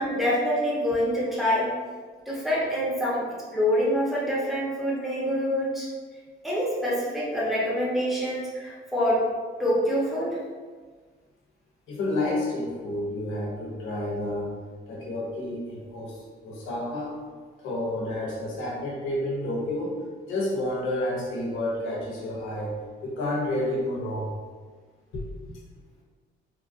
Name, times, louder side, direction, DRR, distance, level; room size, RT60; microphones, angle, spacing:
voice 1, 0.0-1.7 2.3-3.3 3.5-5.9 6.4-9.3 9.6-10.4, equal, ahead, -7 dB, 1.0 m, -26 dB
voice 2, 11.9-14.6 14.9-17.2 17.6-20.0 20.2-22.8 23.0-24.3 25.1-25.6, left 1 dB, 85° left, -2 dB, 0.8 m, -30 dB
3.0 x 2.3 x 2.6 m, 1.5 s
cardioid pair, 90°, 20 cm